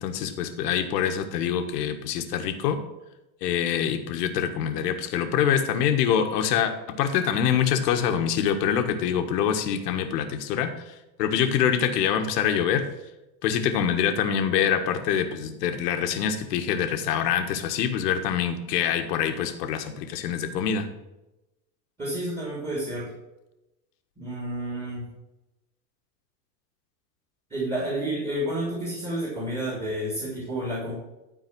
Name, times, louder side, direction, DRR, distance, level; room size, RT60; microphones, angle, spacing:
voice 1, 0.0-2.8 3.4-10.8 11.2-12.8 13.4-20.9, left 8 dB, 70° left, 7 dB, 1.6 m, -25 dB
voice 2, 22.0-23.1 24.2-25.1 27.5-30.9, right 1 dB, 10° right, -5 dB, 3.3 m, -30 dB
12.0 x 4.7 x 6.1 m, 0.98 s
supercardioid pair, 140°, 50 cm